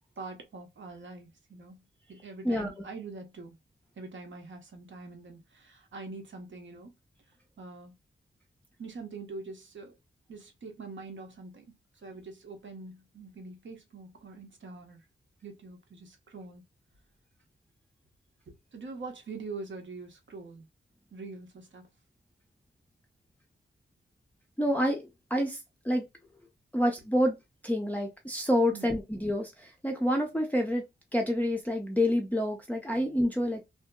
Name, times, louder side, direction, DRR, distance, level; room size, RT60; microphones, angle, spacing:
voice 1, 0.2-1.8 2.1-3.6 4.0-6.9 7.6-7.9 8.8-9.9 10.3-11.8 12.0-15.0 15.4-16.6 18.5-20.7 21.1-21.9 28.7-28.9 32.9-33.3, right 3 dB, 70° right, 0.9 m, -44 dB
voice 2, 2.4-2.8 24.6-25.6 25.8-26.0 26.7-27.4 27.6-30.8 31.1-33.6, equal, 10° left, 0.5 m, -28 dB
2.8 x 2.6 x 2.2 m
wide cardioid pair, 150°, 20 cm